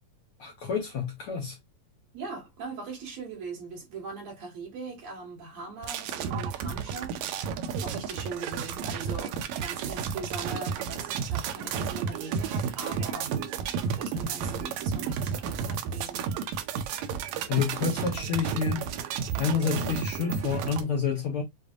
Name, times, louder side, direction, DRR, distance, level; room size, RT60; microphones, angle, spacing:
voice 1, 0.4-1.6 17.5-18.9 19.4-21.4, left 6 dB, 70° left, 1.4 m, -28 dB
voice 2, 2.1-7.4 7.8-16.3, right 3 dB, 65° right, 3.1 m, -40 dB
sound 1, 5.8-20.8, right 7 dB, 80° right, 1.9 m, -32 dB
6.7 x 2.6 x 2.5 m
omnidirectional pair, 3.4 m